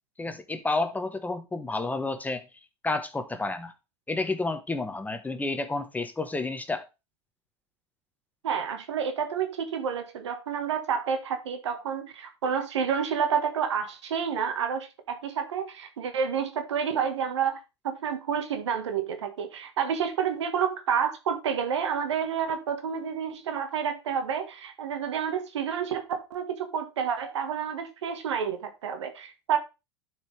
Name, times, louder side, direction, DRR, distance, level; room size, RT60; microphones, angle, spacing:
voice 1, 0.2-2.4 2.8-3.7 4.1-6.8, left 3 dB, 10° left, 1.1 m, -30 dB
voice 2, 8.4-29.6, right 7 dB, 80° right, 1.6 m, -29 dB
11.5 x 4.8 x 3.3 m
hypercardioid pair, 95°, 14 cm